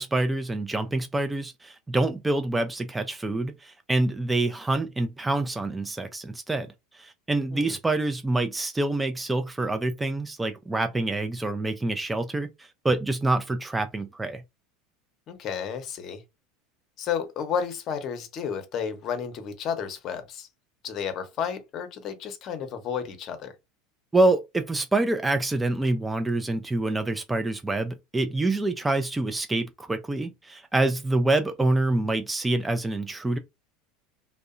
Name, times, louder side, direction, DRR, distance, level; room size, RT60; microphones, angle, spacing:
voice 1, 0.0-6.7 6.9-14.4 24.1-33.4, right 2 dB, 10° right, 0.3 m, -26 dB
voice 2, 15.3-16.2 17.0-20.5 20.8-23.5, left 7 dB, 45° left, 0.7 m, -32 dB
2.6 x 2.1 x 2.4 m
supercardioid pair, 100°, 0 cm